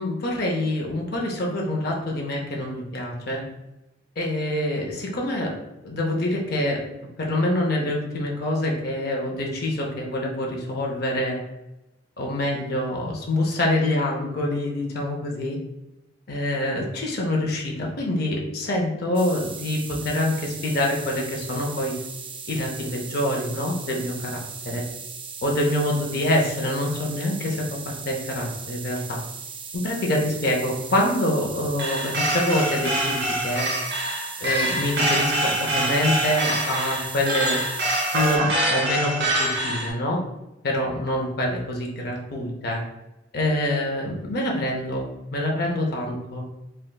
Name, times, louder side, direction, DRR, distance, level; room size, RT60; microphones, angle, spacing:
voice 1, 0.0-3.4 4.2-5.5 5.8-6.8 7.2-11.4 12.2-15.6 16.3-21.9 22.5-24.8 25.4-29.2 29.7-33.7 34.4-37.6 38.1-40.2 40.6-42.8 43.3-46.4, left 1 dB, 55° left, -1 dB, 0.5 m, -26 dB
sound 1, 19.1-38.4, right 5 dB, 30° right, 0.3 m, -38 dB
sound 2, 31.8-39.9, right 1 dB, 60° right, 0.7 m, -25 dB
3.2 x 2.8 x 2.3 m, 0.95 s
head